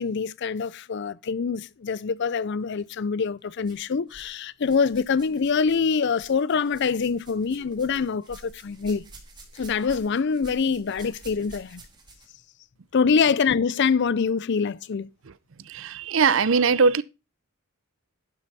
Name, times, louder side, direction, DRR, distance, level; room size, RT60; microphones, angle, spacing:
voice 1, 0.0-9.0 9.5-11.8 12.9-15.1, left 5 dB, 55° left, 0.4 m, -25 dB
sound 1, 2.7-2.8 3.6-4.3 4.6-12.4 13.3-13.4 14.2-14.3, right 2 dB, 20° right, 2.6 m, -49 dB
voice 2, 15.6-17.0, right 5 dB, 60° right, 0.6 m, -21 dB
11.5 x 6.9 x 4.1 m
head